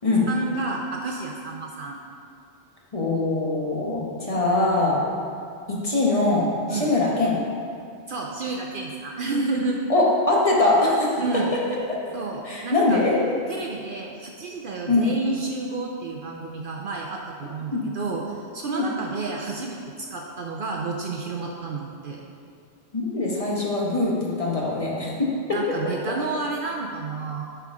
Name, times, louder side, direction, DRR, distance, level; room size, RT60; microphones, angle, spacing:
voice 1, 0.3-2.0 6.7-6.9 8.1-9.8 11.2-11.5 12.1-13.0 13.5-22.2 25.5-27.4, right 3 dB, 60° right, 0 dB, 0.7 m, -30 dB
voice 2, 2.9-5.0 5.7-7.4 9.9-11.2 11.9-12.0 12.4-13.2 14.9-15.1 17.7-17.8 18.7-18.8 22.9-25.6 25.9-26.0, left 2 dB, 30° left, -4 dB, 1.1 m, -22 dB
10.5 x 4.5 x 3.6 m, 2.3 s
omnidirectional pair, 1.2 m